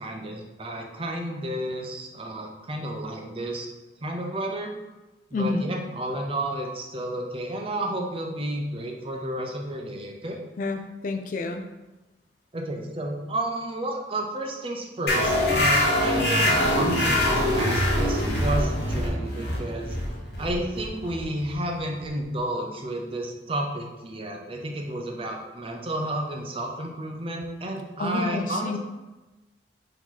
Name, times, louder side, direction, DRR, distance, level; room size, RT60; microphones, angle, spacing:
voice 1, 0.0-3.7 4.0-4.7 5.3-10.4 12.5-20.0 20.4-28.8, right 1 dB, 30° right, 2 dB, 0.6 m, -31 dB
voice 2, 5.3-5.7 10.6-11.6 28.0-28.8, left 3 dB, 50° left, 6 dB, 0.4 m, -29 dB
sound 1, 15.1-22.2, left 1 dB, 65° left, 1.1 m, -24 dB
4.7 x 2.9 x 3.9 m, 1.1 s
head